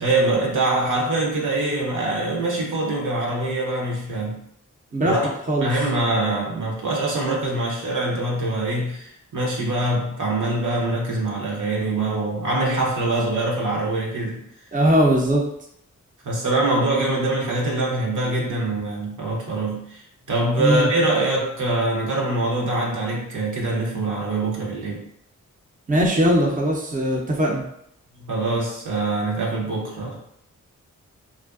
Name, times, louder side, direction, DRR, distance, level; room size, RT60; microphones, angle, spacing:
voice 1, 0.0-4.4 5.0-5.2 5.6-14.4 16.2-20.0 20.3-25.0 28.2-30.3, right 2 dB, 65° right, -3 dB, 0.8 m, -24 dB
voice 2, 14.7-15.4 20.6-20.9 25.9-27.6, right 1 dB, 25° right, -2 dB, 0.6 m, -19 dB
2.5 x 2.1 x 2.4 m, 0.74 s
cardioid pair, 40°, 33 cm